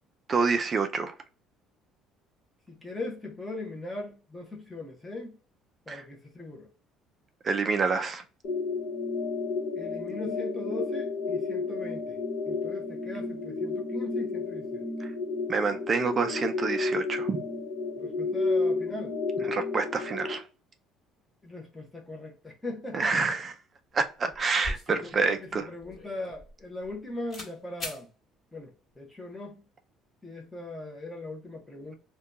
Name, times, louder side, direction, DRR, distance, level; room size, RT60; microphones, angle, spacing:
voice 1, 0.3-1.1 5.9-6.0 7.4-8.2 15.0-15.1 15.5-17.4 19.4-20.4 22.9-23.5 23.9-25.7, right 4 dB, 30° right, 0.3 m, -27 dB
voice 2, 2.7-5.4 5.9-6.7 9.7-12.2 12.5-14.8 18.0-19.2 21.4-23.1 25.0-28.1 28.5-29.6 30.2-32.0, left 2 dB, 5° left, 0.7 m, -39 dB
sound 1, 8.4-20.3, left 3 dB, 55° left, 1.2 m, -31 dB
sound 2, 23.9-24.0 24.3-27.0 27.3-27.5 27.8-28.0, left 1 dB, 30° left, 1.4 m, -40 dB
2.7 x 2.2 x 3.6 m
cardioid pair, 145°, 0 cm